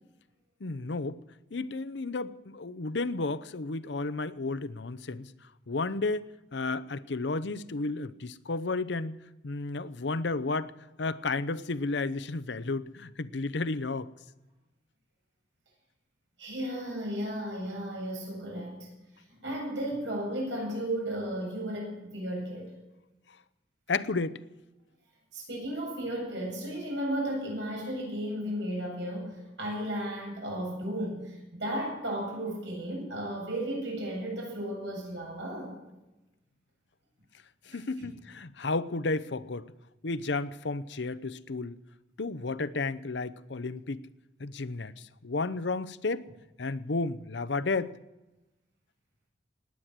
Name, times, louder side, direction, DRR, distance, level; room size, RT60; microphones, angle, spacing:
voice 1, 0.6-1.2 1.5-5.3 5.7-10.7 11.0-14.1 23.9-24.4 37.7-39.7 40.0-41.7 42.2-44.1 44.4-46.3 46.6-47.9, left 3 dB, 75° left, 0.8 m, -32 dB
voice 2, 16.4-18.9 19.4-22.7 25.3-35.8 37.7-38.1, right 1 dB, 85° right, 7.9 m, -34 dB
19.0 x 9.7 x 7.5 m
head